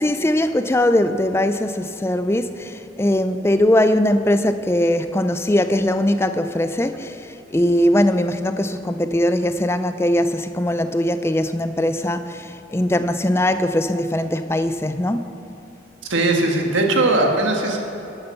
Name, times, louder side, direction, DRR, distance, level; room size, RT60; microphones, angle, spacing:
voice 1, 0.0-15.2, left 1 dB, 15° left, 0.4 m, -20 dB
voice 2, 16.1-17.8, right 2 dB, 85° right, 1.6 m, -19 dB
13.0 x 8.9 x 6.9 m
head